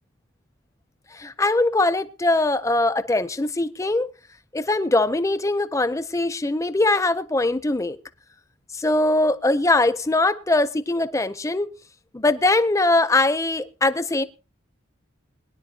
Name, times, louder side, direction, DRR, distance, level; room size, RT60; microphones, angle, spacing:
voice 1, 1.1-4.1 4.5-8.0 8.7-11.7 12.1-14.2, left 2 dB, 15° left, 0.5 m, -21 dB
22.5 x 10.5 x 2.8 m
head